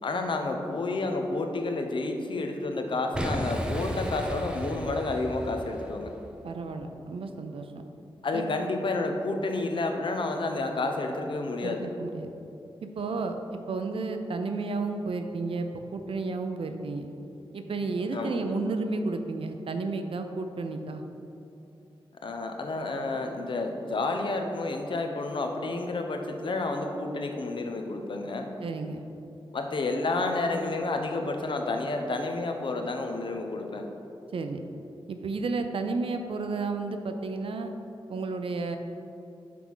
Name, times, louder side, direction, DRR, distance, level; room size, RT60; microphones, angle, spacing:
voice 1, 0.0-6.1 8.2-11.9 18.1-18.5 22.2-28.5 29.5-33.9, left 2 dB, 60° left, 4 dB, 0.7 m, -30 dB
Boom, 3.1-6.1, equal, 10° right, 0.6 m, -34 dB
voice 2, 6.4-7.9 8.3-8.4 11.6-12.3 13.0-17.1 17.5-21.0 28.6-29.0 34.3-34.6 35.1-37.7 38.1-38.8, right 3 dB, 75° right, 6 dB, 0.5 m, -32 dB
6.0 x 4.6 x 5.5 m, 2.8 s
wide cardioid pair, 130°, 9 cm